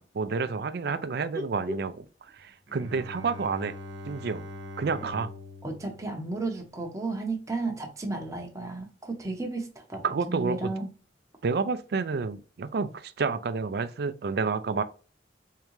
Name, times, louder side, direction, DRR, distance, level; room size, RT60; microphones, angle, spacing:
voice 1, 0.0-1.9 2.3-3.7 4.1-4.4 4.8-5.3 10.0-10.7 11.4-14.8, right 4 dB, 60° right, 0.4 m, -29 dB
voice 2, 1.3-1.8 5.6-10.9, right 2 dB, 20° right, 0.7 m, -33 dB
Bowed string instrument, 2.7-7.2, left 1 dB, 90° right, 0.9 m, -43 dB
3.7 x 3.3 x 3.1 m
head